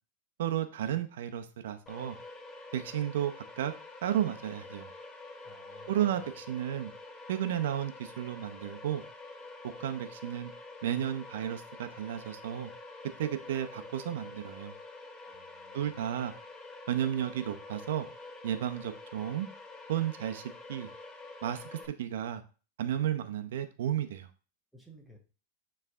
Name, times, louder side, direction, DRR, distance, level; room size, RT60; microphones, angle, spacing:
voice 1, 0.4-2.2 2.7-3.7 4.0-4.9 5.9-6.9 7.3-9.0 9.8-10.5 10.8-12.7 13.2-14.7 15.7-16.3 16.9-18.1 18.4-19.5 19.9-20.4 20.7-20.9 21.4-22.4 22.8-24.3, right 10 dB, 75° right, 9 dB, 0.7 m, -33 dB
sound 1, 1.9-21.9, left 2 dB, 20° left, 1.3 m, -47 dB
voice 2, 5.4-5.9 15.2-15.9 24.7-25.2, right 1 dB, ahead, 1 dB, 1.2 m, -56 dB
9.2 x 3.3 x 3.6 m, 0.35 s
supercardioid pair, 150°, 0 cm